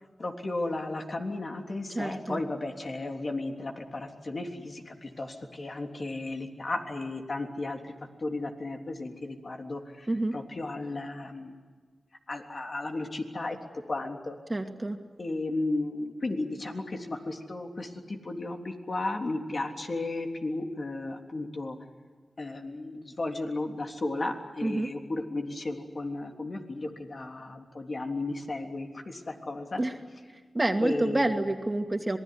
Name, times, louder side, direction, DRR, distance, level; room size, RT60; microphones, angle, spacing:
voice 1, 0.2-7.9 8.2-11.6 12.3-13.6 13.9-14.4 15.2-21.8 22.4-29.8 30.8-31.3, left 2 dB, 50° left, 3 dB, 3.4 m, -34 dB
voice 2, 1.9-2.4 10.1-10.4 14.5-15.0 24.6-24.9 29.8-29.9 30.5-32.2, right 2 dB, 25° right, 4 dB, 2.5 m, -28 dB
26.5 x 21.0 x 9.6 m, 1.5 s
cardioid pair, 55°, 0 cm